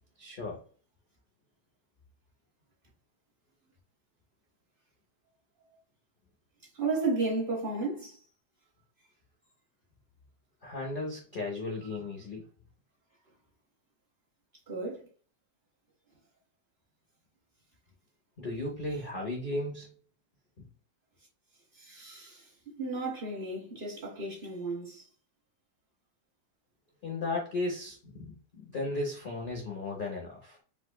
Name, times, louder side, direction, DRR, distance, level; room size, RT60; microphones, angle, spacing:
voice 1, 0.2-0.6 10.6-12.4 18.4-19.9 27.0-30.6, left 2 dB, 65° left, 0.5 m, -35 dB
voice 2, 6.7-8.2 14.7-15.1 21.7-25.1, right 3 dB, 35° right, 1.0 m, -33 dB
4.8 x 2.2 x 2.2 m
omnidirectional pair, 1.9 m